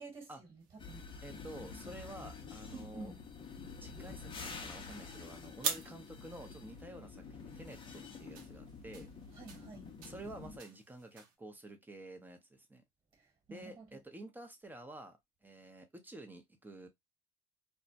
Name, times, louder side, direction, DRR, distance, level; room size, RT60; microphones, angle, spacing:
voice 1, 0.0-1.1 2.7-3.2 5.0-5.1 9.3-9.9 13.1-14.0, right 4 dB, 30° right, 1.3 m, -51 dB
sound 1, 0.6-11.4, right 6 dB, 75° right, 0.7 m, -47 dB
sound 2, 0.8-10.6, left 5 dB, 25° left, 0.6 m, -48 dB
voice 2, 1.2-3.1 3.8-9.1 10.0-12.8 13.5-16.9, right 1 dB, 10° right, 0.7 m, -50 dB
2.2 x 2.1 x 2.6 m
supercardioid pair, 90°, 18 cm